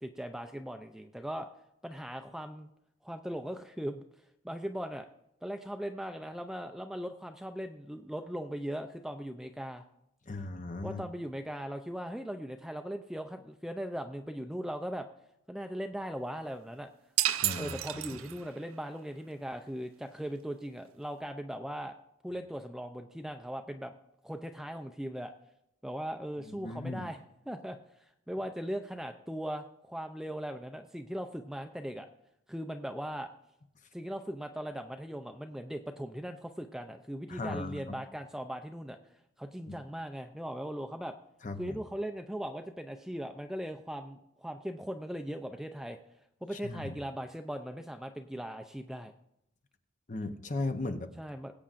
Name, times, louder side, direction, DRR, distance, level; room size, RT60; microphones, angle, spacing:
voice 1, 0.0-1.5 1.8-2.7 3.0-4.0 4.4-5.1 5.4-9.8 10.8-15.1 15.5-16.9 17.6-21.9 22.2-23.9 24.2-25.3 25.8-27.2 27.5-32.1 32.5-33.3 33.9-39.0 39.4-41.2 41.6-46.0 46.4-49.1 51.2-51.5, equal, ahead, 6 dB, 0.4 m, -39 dB
voice 2, 10.3-11.0 17.4-17.8 26.5-27.1 37.3-38.0 39.7-39.8 41.4-41.8 46.5-47.0 50.1-51.1, left 2 dB, 35° left, 7 dB, 0.8 m, -37 dB
sound 1, 17.2-18.6, right 13 dB, 70° right, 0.4 m, -31 dB
20.5 x 8.5 x 2.5 m, 0.80 s
head